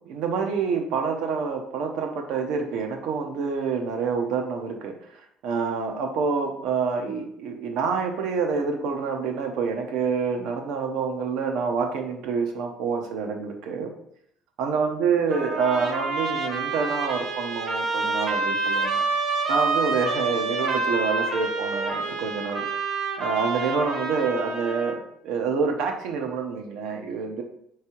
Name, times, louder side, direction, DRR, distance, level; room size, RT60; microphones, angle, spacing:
voice 1, 0.1-13.9 14.6-19.0 19.5-22.7 23.2-27.4, right 5 dB, 75° right, 4 dB, 0.7 m, -27 dB
Trumpet, 15.3-25.0, right 3 dB, 40° right, 0.8 m, -27 dB
3.5 x 3.2 x 4.3 m, 0.73 s
cardioid pair, 150°, 0 cm